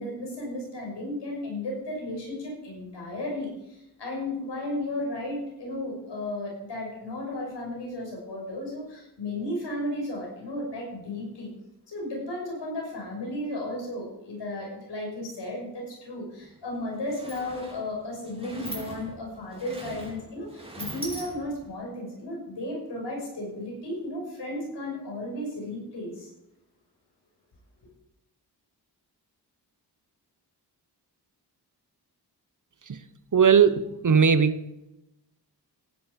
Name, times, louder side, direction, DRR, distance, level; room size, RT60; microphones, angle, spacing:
voice 1, 0.0-11.5 11.9-26.3, left 1 dB, 90° left, -1 dB, 5.9 m, -34 dB
Sliding door, 16.4-16.5 16.8-21.7, right 1 dB, 15° right, 4.3 m, -41 dB
voice 2, 33.3-34.7, right 6 dB, 50° right, 12 dB, 1.0 m, -20 dB
15.0 x 10.5 x 5.4 m, 0.88 s
cardioid pair, 75°, 41 cm